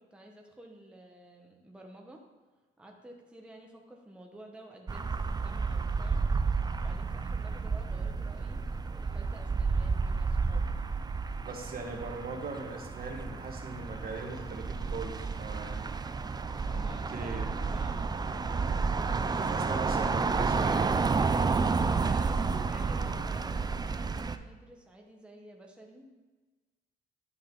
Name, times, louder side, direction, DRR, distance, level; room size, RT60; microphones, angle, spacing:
voice 1, 0.0-2.2 2.8-6.2 6.8-10.8 16.6-18.1 22.0-26.1, right 1 dB, 5° right, 0 dB, 1.2 m, -51 dB
sound 1, 4.9-24.4, right 4 dB, 20° right, 0.4 m, -31 dB
voice 2, 11.4-15.9 17.1-17.5 19.3-21.2, right 3 dB, 50° right, 2 dB, 1.4 m, -40 dB
11.0 x 5.2 x 3.9 m, 1.3 s
cardioid pair, 90°, 20 cm